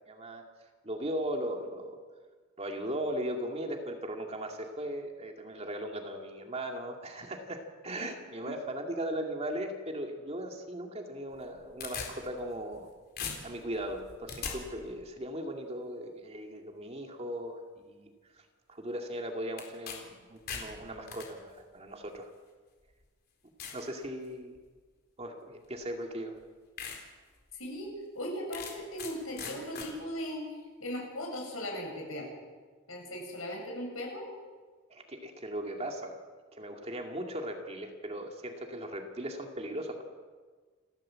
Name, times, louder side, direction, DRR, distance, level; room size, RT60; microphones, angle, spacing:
voice 1, 0.1-0.4 0.8-2.0 2.6-12.9 13.4-18.1 18.7-22.3 23.7-24.6 25.2-26.4 34.9-36.2 36.5-40.0, right 1 dB, 30° right, 3 dB, 2.3 m, -38 dB
sound 1, 11.3-12.9 13.2-14.5 19.6-20.0 20.3-21.3 22.1-22.2 22.9-23.0 23.6-23.8 24.3-24.7 25.8-25.9 26.4-26.5 26.8-27.0 27.4-27.5 28.5-29.1 29.4-29.9, left 6 dB, 50° left, 4.1 m, -40 dB
voice 2, 27.5-30.5 30.8-32.4 32.9-34.3, equal, 80° left, 0 dB, 7.8 m, -38 dB
29.0 x 12.5 x 7.6 m, 1.4 s
head